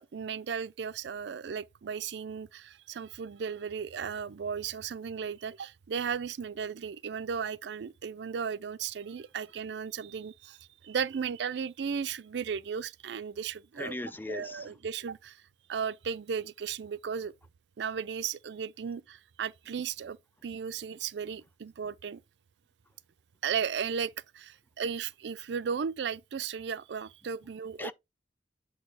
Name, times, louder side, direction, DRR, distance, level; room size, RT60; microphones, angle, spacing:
voice 1, 0.0-13.9 14.3-15.4 15.7-17.3 17.8-20.2 20.4-22.2 23.4-27.9, right 6 dB, 70° right, 0.4 m, -35 dB
voice 2, 13.8-14.7 27.8-27.9, left 2 dB, 10° left, 0.3 m, -38 dB
8.1 x 2.8 x 4.7 m
head